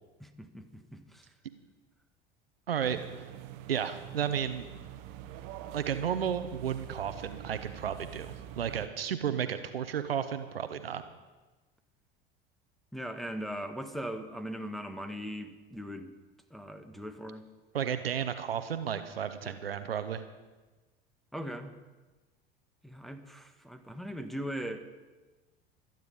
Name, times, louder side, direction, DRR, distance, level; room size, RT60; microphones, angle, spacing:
voice 1, 0.2-1.3 12.9-16.1 16.5-17.4 19.4-19.6 21.3-21.7 22.8-24.9, equal, ahead, 5 dB, 1.6 m, -40 dB
voice 2, 2.7-3.2 3.7-4.7 5.7-11.0 17.7-20.2, right 8 dB, 80° right, 10 dB, 1.0 m, -33 dB
sound 1, 2.8-8.9, right 11 dB, 55° right, 1.2 m, -45 dB
24.5 x 9.4 x 5.4 m, 1.2 s
figure-of-eight pair, 70°, 29 cm